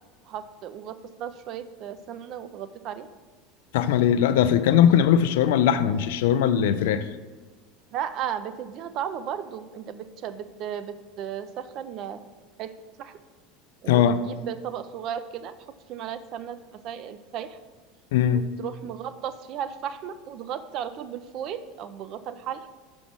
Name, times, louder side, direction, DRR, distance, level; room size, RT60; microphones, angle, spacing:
voice 1, 0.2-3.1 7.9-12.2 12.6-12.7 13.0-13.1 13.8-15.5 15.9-17.6 18.3-22.7, right 9 dB, 45° right, 11 dB, 0.4 m, -35 dB
voice 2, 3.7-7.1 13.9-14.2 18.1-18.4, left 9 dB, 60° left, 12 dB, 0.3 m, -20 dB
5.9 x 5.2 x 6.1 m, 1.3 s
figure-of-eight pair, 75°, 0 cm